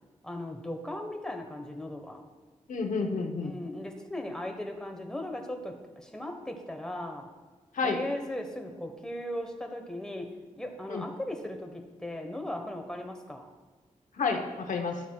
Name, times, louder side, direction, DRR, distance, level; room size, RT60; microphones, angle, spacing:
voice 1, 0.2-2.2 3.4-7.3 7.8-10.3 10.6-13.5, left 1 dB, 5° left, 3 dB, 1.2 m, -37 dB
voice 2, 2.7-3.5 7.7-8.0 10.9-11.0 14.2-15.0, left 4 dB, 80° left, 4 dB, 0.9 m, -30 dB
12.5 x 8.1 x 2.3 m, 1.3 s
cardioid pair, 65°, 13 cm